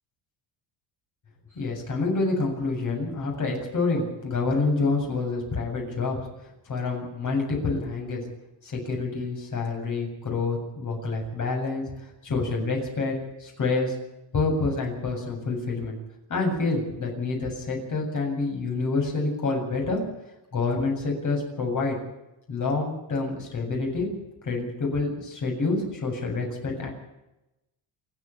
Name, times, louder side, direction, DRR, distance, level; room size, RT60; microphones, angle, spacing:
voice 1, 1.5-6.2 6.7-8.2 8.6-13.9 14.3-16.0 16.3-20.0 20.5-22.0 22.5-24.1 24.4-26.9, left 3 dB, 40° left, 1 dB, 7.8 m, -27 dB
28.0 x 9.3 x 9.9 m, 0.95 s
cardioid pair, 140°, 45 cm